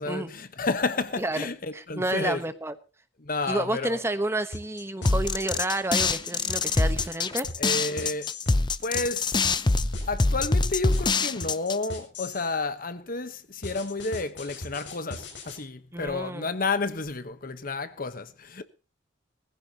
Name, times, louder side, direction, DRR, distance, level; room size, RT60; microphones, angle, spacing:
voice 1, 0.0-2.4 3.2-4.0 7.6-8.3 8.8-9.6 10.1-18.6, left 3 dB, 50° left, 1.1 m, -31 dB
voice 2, 1.7-2.7 3.5-7.5 15.9-16.5, right 1 dB, 15° right, 1.1 m, -30 dB
sound 1, 4.5-12.5 13.6-15.6, left 2 dB, 80° left, 7.0 m, -39 dB
sound 2, 5.0-11.9, left 3 dB, 25° left, 0.6 m, -24 dB
20.0 x 15.0 x 2.9 m
head